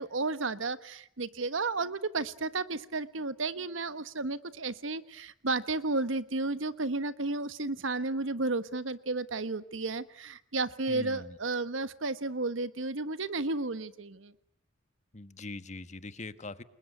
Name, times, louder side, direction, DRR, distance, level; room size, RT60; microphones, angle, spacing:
voice 1, 0.0-14.3, right 3 dB, 75° right, 14 dB, 1.3 m, -33 dB
voice 2, 10.9-11.3 15.1-16.6, left 2 dB, 35° left, 12 dB, 1.3 m, -42 dB
29.0 x 21.5 x 9.5 m, 0.72 s
head